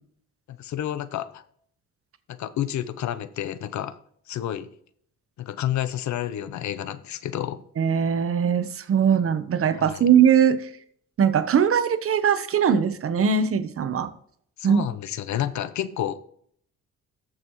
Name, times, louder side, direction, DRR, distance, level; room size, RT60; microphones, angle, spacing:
voice 1, 0.5-1.4 2.3-4.0 4.3-4.7 5.4-7.6 9.8-10.1 14.6-16.2, left 11 dB, 70° left, 14 dB, 0.8 m, -30 dB
voice 2, 7.8-10.7 11.2-14.1 14.6-14.8, right 7 dB, 45° right, 12 dB, 0.9 m, -21 dB
13.5 x 6.4 x 3.1 m, 0.62 s
cardioid pair, 90°, 30 cm